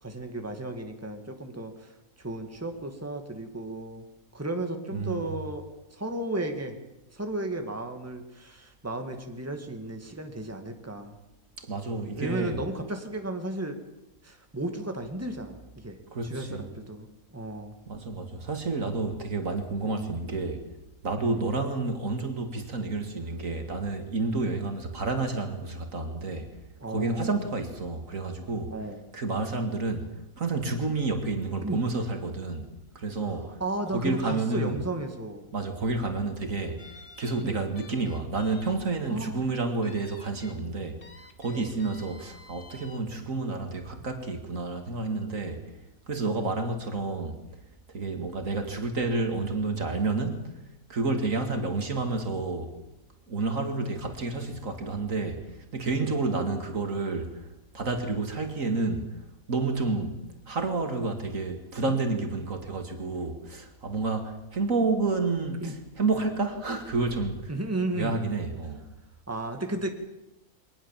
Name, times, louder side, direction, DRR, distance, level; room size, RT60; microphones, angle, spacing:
voice 1, 0.0-4.1 4.3-5.6 5.9-6.8 7.1-11.2 12.1-13.8 14.2-16.0 16.2-17.1 17.3-17.7 19.8-20.1 21.2-21.5 24.2-24.5 26.8-27.4 28.7-29.0 31.6-31.8 33.3-35.5 37.4-37.7 39.0-39.4 41.5-41.8 46.3-46.4 51.5-51.7 56.0-56.2 59.9-60.0 61.8-61.9 65.6-65.7 67.5-68.2 69.3-69.9, right 2 dB, 10° right, 5 dB, 2.2 m, -34 dB
voice 2, 4.9-5.3 11.6-12.6 16.1-16.6 17.9-20.6 21.0-26.5 26.9-28.7 29.1-30.1 30.4-32.7 32.9-33.6 33.9-34.8 35.5-41.0 41.4-45.6 46.1-47.4 47.9-50.4 50.9-52.8 53.3-57.4 57.7-59.1 59.5-60.2 60.5-67.5 67.9-68.8, right 3 dB, 65° right, 6 dB, 2.6 m, -30 dB
sound 1, 36.8-38.8 39.1-39.2 39.8-40.6 41.0-43.0, left 3 dB, 40° left, 1.9 m, -51 dB
23.5 x 19.0 x 7.4 m, 0.90 s
omnidirectional pair, 1.5 m